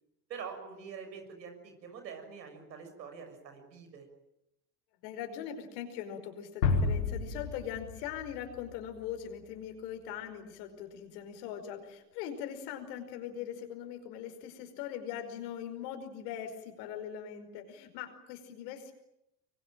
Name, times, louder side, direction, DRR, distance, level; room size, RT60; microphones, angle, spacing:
voice 1, 0.3-4.0, right 6 dB, 85° right, 6 dB, 6.6 m, -45 dB
voice 2, 5.0-18.9, left 9 dB, 70° left, 7 dB, 5.2 m, -41 dB
sound 1, 6.6-9.5, left 4 dB, 90° left, 5.1 m, -32 dB
24.5 x 24.5 x 9.1 m, 0.85 s
hypercardioid pair, 75°, 50 cm